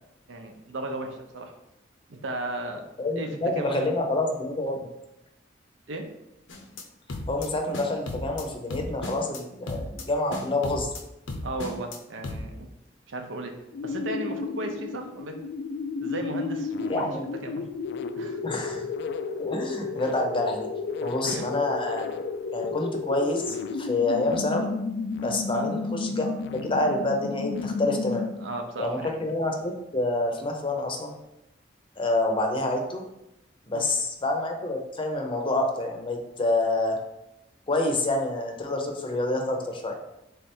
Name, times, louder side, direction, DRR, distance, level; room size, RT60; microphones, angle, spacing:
voice 1, 0.3-1.5 2.1-2.9 3.1-4.0 4.7-4.8 5.9-6.1 11.4-12.7 13.1-13.5 13.8-15.4 16.0-17.1 17.4-17.7 18.2-18.4 21.2-21.5 25.5-25.7 28.4-29.3 33.7-33.9, right 2 dB, 80° right, 4 dB, 0.7 m, -35 dB
voice 2, 3.0-4.9 7.3-10.9 16.9-17.3 18.4-18.9 19.4-20.7 21.0-22.1 22.5-24.7 25.2-28.3 28.8-31.1 32.0-33.0 33.7-37.0 37.7-40.0, left 2 dB, 25° left, 3 dB, 0.6 m, -27 dB
sound 1, 6.5-6.8 7.1-7.5 7.7-8.4 8.7-9.4 9.7-10.0 10.3-11.0 11.3-12.0 12.2-12.4, left 2 dB, 85° left, 0.7 m, -35 dB
sound 2, 13.7-28.6, left 4 dB, 60° left, 0.3 m, -32 dB
3.6 x 3.3 x 4.3 m, 0.88 s
head